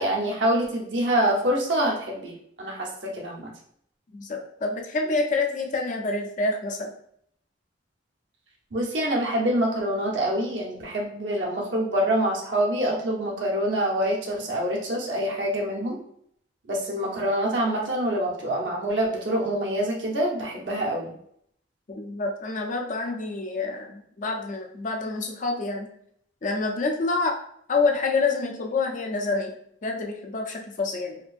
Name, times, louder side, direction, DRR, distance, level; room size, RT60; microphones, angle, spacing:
voice 1, 0.0-2.3 2.6-3.5 8.7-16.0 16.7-21.1, right 1 dB, 70° right, -2 dB, 0.9 m, -26 dB
voice 2, 4.1-6.9 21.9-25.9 26.4-27.4 27.7-29.6 29.8-31.2, left 3 dB, 45° left, 2 dB, 0.5 m, -27 dB
4.1 x 2.6 x 2.5 m, 0.68 s
head